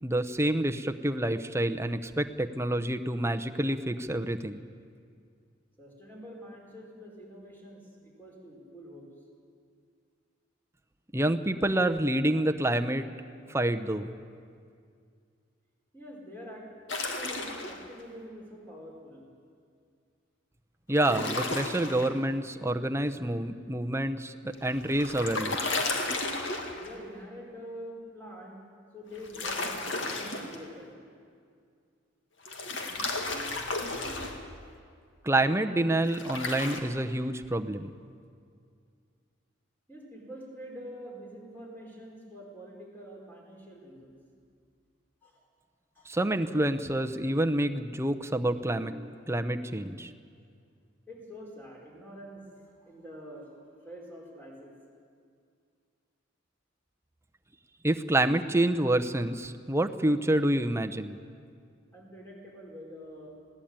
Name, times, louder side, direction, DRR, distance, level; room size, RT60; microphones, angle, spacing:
voice 1, 0.0-4.6 11.1-13.0 13.5-14.1 20.9-25.8 35.2-37.9 46.1-50.1 57.8-61.2, right 1 dB, 15° right, 7 dB, 0.7 m, -28 dB
voice 2, 5.8-9.1 15.9-16.7 17.2-19.2 26.7-28.6 28.9-31.0 39.9-44.2 45.2-45.4 45.9-46.1 51.1-52.5 52.8-54.7 61.9-63.3, equal, 10° left, -2 dB, 4.9 m, -46 dB
sound 1, 16.9-17.8 21.0-22.1 24.5-26.9 29.1-30.6 32.5-34.4 36.1-36.8, left 2 dB, 65° left, 2.1 m, -33 dB
20.5 x 17.0 x 9.0 m, 2.2 s
head